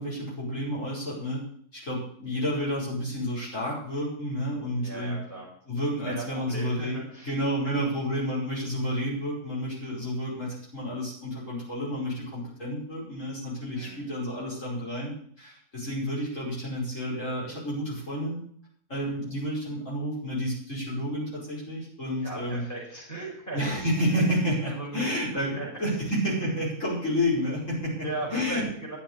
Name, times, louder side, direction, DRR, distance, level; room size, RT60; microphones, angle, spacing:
voice 1, 0.0-1.4 1.7-5.2 5.7-18.4 18.9-22.6 23.5-27.9 28.3-28.7, equal, 50° left, -6 dB, 5.9 m, -30 dB
voice 2, 4.8-5.4 6.0-7.3 7.6-7.8 13.7-14.1 18.9-19.1 22.2-23.6 24.7-25.1 25.5-25.7 28.0-29.0, right 2 dB, 10° left, -4 dB, 5.2 m, -38 dB
11.0 x 7.6 x 8.2 m, 0.63 s
omnidirectional pair, 1.7 m